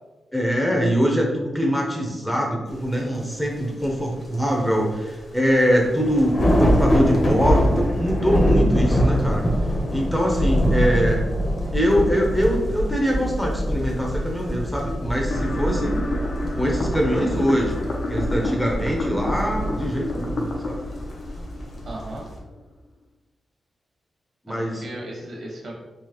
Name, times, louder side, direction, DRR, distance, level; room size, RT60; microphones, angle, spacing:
voice 1, 0.3-9.4 9.9-11.2 11.7-15.9 16.5-17.7 18.1-20.8 24.5-24.8, equal, 5° left, -1 dB, 0.6 m, -23 dB
sound 1, 3.3-3.4 3.8-3.9 5.4-5.5 5.7-22.4, equal, 45° left, 0.8 m, -24 dB
sound 2, 15.3-22.3, left 1 dB, 70° left, 0.6 m, -30 dB
voice 2, 21.8-22.2 24.5-25.7, right 1 dB, 60° right, -2 dB, 1.0 m, -36 dB
3.9 x 2.8 x 2.9 m, 1.2 s
wide cardioid pair, 125°, 0 cm